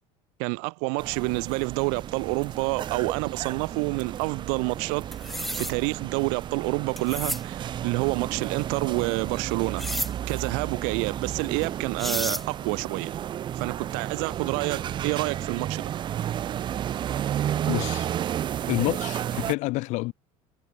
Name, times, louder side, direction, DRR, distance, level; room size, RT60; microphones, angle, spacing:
voice 1, 0.4-5.0 5.5-9.9 10.3-13.1 13.5-15.9, right 40 dB or more, 75° right, 2.5 m, -28 dB
sound 1, 1.0-19.5, right 10 dB, 35° right, 5.1 m, -32 dB
sound 2, 5.1-5.7 7.0-7.4 9.8-10.1 11.6-11.7 12.0-12.4, equal, ahead, 0.5 m, -31 dB
voice 2, 17.7-18.1 18.7-20.1, left 21 dB, 55° left, 4.8 m, -28 dB
cardioid pair, 165°, 14 cm